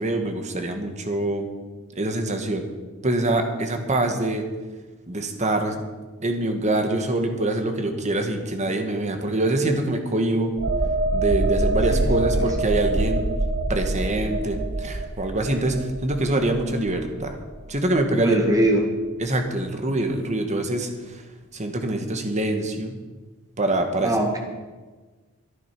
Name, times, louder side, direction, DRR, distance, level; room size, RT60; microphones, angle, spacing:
voice 1, 0.0-1.5 2.0-2.7 3.0-4.4 5.1-5.8 6.2-10.5 11.1-13.3 13.7-15.8 16.0-17.4 17.7-18.4 19.2-21.2 21.5-22.9 23.6-24.1, right 2 dB, 35° right, 5 dB, 1.4 m, -24 dB
sound 1, 10.6-18.0 18.4-18.6, right 2 dB, 60° right, 1.2 m, -25 dB
voice 2, 11.9-12.5 18.2-19.0 24.0-24.4, right 1 dB, 15° right, 2 dB, 2.0 m, -22 dB
13.0 x 10.5 x 6.0 m, 1.3 s
head